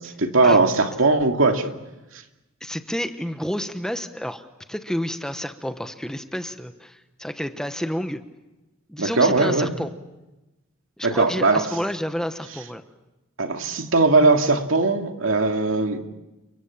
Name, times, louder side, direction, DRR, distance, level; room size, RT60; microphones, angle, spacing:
voice 1, 0.0-1.7 9.0-9.7 11.0-11.6 13.4-16.0, right 3 dB, 70° right, 4 dB, 2.5 m, -19 dB
voice 2, 2.6-4.4 4.7-8.2 8.9-9.9 11.0-12.8, equal, 5° left, 8 dB, 1.1 m, -30 dB
30.0 x 23.0 x 7.3 m, 1.0 s
head